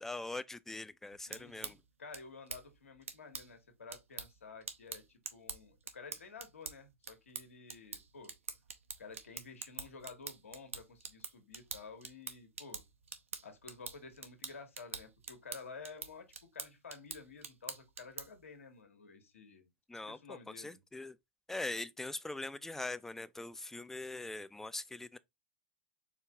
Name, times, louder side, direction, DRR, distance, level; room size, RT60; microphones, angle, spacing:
voice 1, 0.0-1.8 19.9-21.1 21.5-25.2, left 2 dB, 5° left, 0.4 m, -42 dB
sound 1, 1.1-18.5, right 5 dB, 80° right, 0.8 m, -47 dB
voice 2, 1.3-8.3 9.0-12.8 13.4-19.7 20.1-20.8, left 4 dB, 80° left, 1.3 m, -52 dB
4.6 x 2.7 x 3.5 m
hypercardioid pair, 100°, 7 cm